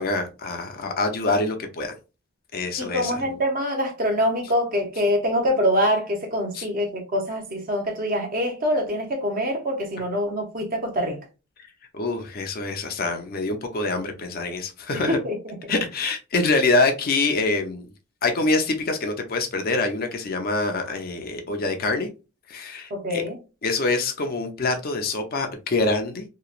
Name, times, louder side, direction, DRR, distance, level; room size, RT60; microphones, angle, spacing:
voice 1, 0.0-1.9 2.5-3.1 6.5-6.7 11.9-15.2 15.7-17.9 18.2-22.1 22.5-23.2 23.6-26.2, left 3 dB, 45° left, 0.5 m, -25 dB
voice 2, 2.8-11.2 15.1-15.4 22.9-23.4, equal, 45° right, 0.8 m, -24 dB
2.9 x 2.2 x 2.4 m
head